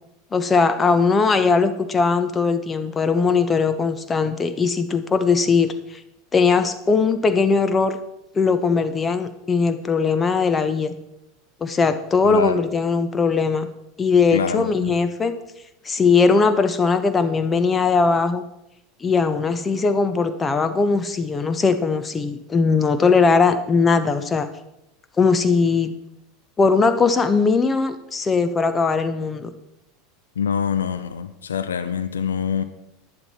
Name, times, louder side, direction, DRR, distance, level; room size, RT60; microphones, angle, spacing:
voice 1, 0.3-5.7 6.3-8.0 8.3-10.9 11.6-13.7 14.0-15.3 15.8-18.4 19.0-24.5 25.2-25.9 26.6-29.5, left 4 dB, 20° left, 11 dB, 1.1 m, -19 dB
voice 2, 12.2-12.6 14.3-15.0 30.4-32.6, left 7 dB, 75° left, 11 dB, 0.7 m, -25 dB
11.0 x 9.9 x 4.4 m, 0.85 s
figure-of-eight pair, 80°, 0 cm